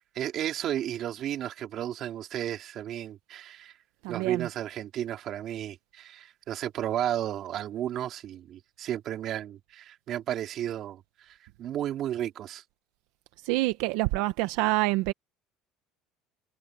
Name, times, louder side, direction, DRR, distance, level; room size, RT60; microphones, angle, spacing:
voice 1, 0.1-3.7 4.1-12.6, right 11 dB, 40° right, 3.4 m, -33 dB
voice 2, 4.0-4.5 13.4-15.1, right 19 dB, 80° right, 0.8 m, -26 dB
cardioid pair, 160°, 0 cm